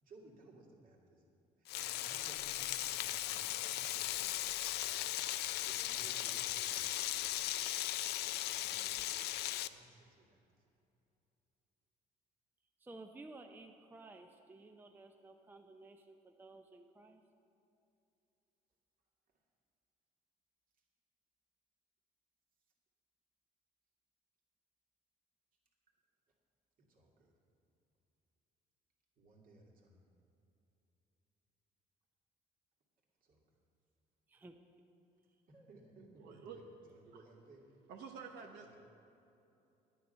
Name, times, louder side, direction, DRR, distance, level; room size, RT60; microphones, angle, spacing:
voice 1, 0.0-1.2 1.6-7.5 8.5-9.1 9.6-9.9 10.2-10.4 26.9-27.3 29.2-30.0 33.2-33.4 35.5-36.6 36.9-37.6 38.6-38.8, right 2 dB, 55° right, -1 dB, 2.3 m, -60 dB
Frying (food), 1.7-9.7, left 14 dB, 75° left, 0.4 m, -37 dB
voice 2, 12.8-17.2 34.3-34.6, right 2 dB, 10° right, 5 dB, 0.5 m, -55 dB
voice 3, 36.2-36.6 37.1-37.2 37.9-38.7, right 6 dB, 80° right, 1 dB, 0.9 m, -50 dB
10.0 x 9.4 x 5.6 m, 2.8 s
cardioid pair, 110°, 17 cm